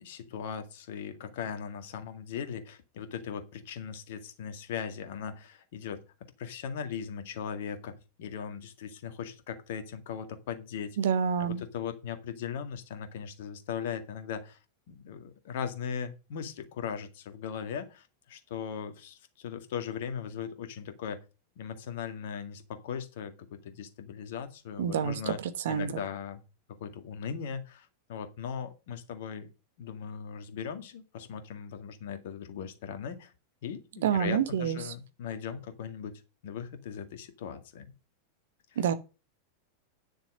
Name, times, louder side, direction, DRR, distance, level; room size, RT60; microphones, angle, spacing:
voice 1, 0.0-6.0 6.4-11.0 11.4-14.6 14.9-21.2 21.6-25.4 25.7-26.4 26.8-29.5 29.8-33.3 33.6-37.9 38.7-38.9, left 7 dB, 55° left, 1.9 m, -39 dB
voice 2, 11.0-11.6 24.8-25.1 25.6-25.9 34.0-34.8 38.8-38.9, right 8 dB, 60° right, 1.1 m, -27 dB
10.5 x 6.6 x 5.4 m
figure-of-eight pair, 90°, 0 cm